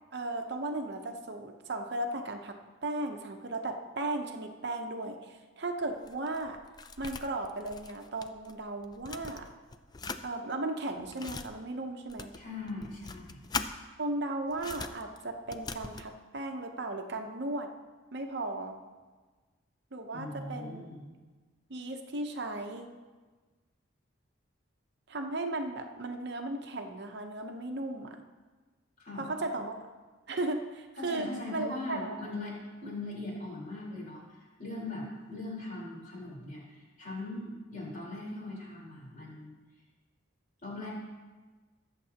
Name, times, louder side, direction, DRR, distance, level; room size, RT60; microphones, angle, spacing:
voice 1, 0.1-2.6 2.8-6.6 7.0-9.5 10.2-12.3 14.0-17.7 18.1-18.8 19.9-20.8 21.7-22.9 25.1-28.2 29.2-29.8 30.3-32.3, right 2 dB, 55° right, 4 dB, 0.8 m, -36 dB
sound 1, 5.8-8.6 8.8-10.2 10.8-11.5 12.1-13.7 14.5-16.1, left 4 dB, 20° left, 0.4 m, -41 dB
voice 2, 12.3-13.4 20.1-21.1 29.0-29.3 31.0-32.5 32.8-39.6 40.6-40.9, left 2 dB, 40° left, -5 dB, 4.0 m, -40 dB
22.0 x 7.5 x 2.9 m, 1.3 s
head